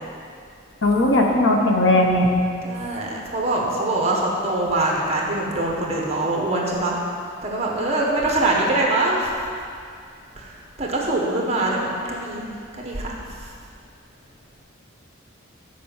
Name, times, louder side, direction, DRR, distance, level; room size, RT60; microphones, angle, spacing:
voice 1, 0.8-2.3, left 1 dB, 70° left, 1 dB, 1.0 m, -18 dB
voice 2, 2.6-6.9 7.4-9.4 10.4-10.5 10.8-12.5 12.8-13.1, right 2 dB, 30° right, -2 dB, 1.3 m, -23 dB
7.7 x 5.1 x 7.2 m, 2.3 s
head